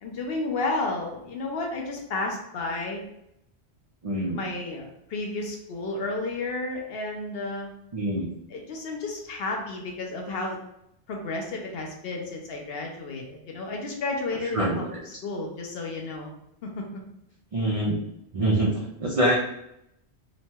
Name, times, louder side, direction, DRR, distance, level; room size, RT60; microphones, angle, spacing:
voice 1, 0.0-3.0 4.3-7.7 8.5-10.6 11.1-16.3 16.6-16.8, left 2 dB, 65° left, 1 dB, 0.8 m, -32 dB
voice 2, 4.0-4.4 7.9-8.3 14.5-14.9 17.5-18.0 18.3-19.4, right 1 dB, 60° right, -4 dB, 0.3 m, -24 dB
3.0 x 2.2 x 2.7 m, 0.78 s
omnidirectional pair, 1.1 m